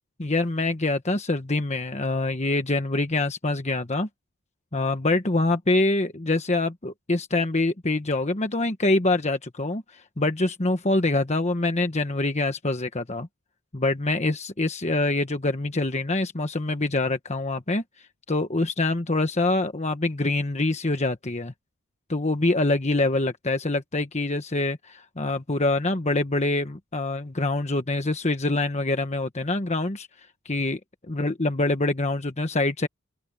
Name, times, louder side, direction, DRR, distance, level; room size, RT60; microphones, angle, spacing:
voice 1, 0.2-4.1 4.7-13.3 13.7-17.8 18.3-21.5 22.1-30.1 30.4-30.8 31.1-32.9, left 2 dB, 30° left, 1.2 m, -25 dB
open air
head